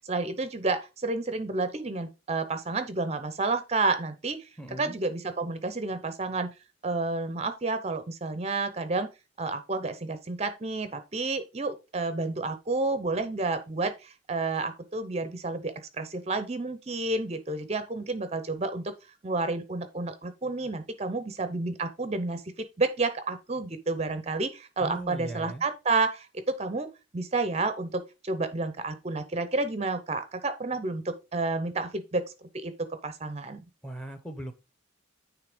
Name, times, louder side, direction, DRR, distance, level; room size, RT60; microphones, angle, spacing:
voice 1, 0.0-4.5 4.8-6.5 6.8-9.1 9.4-18.9 19.2-26.9 27.1-32.3 32.5-33.6, right 3 dB, 30° right, 0.6 m, -30 dB
voice 2, 4.6-5.0 24.8-25.7 33.8-34.5, right 1 dB, 5° left, 0.8 m, -38 dB
9.5 x 3.2 x 4.9 m
head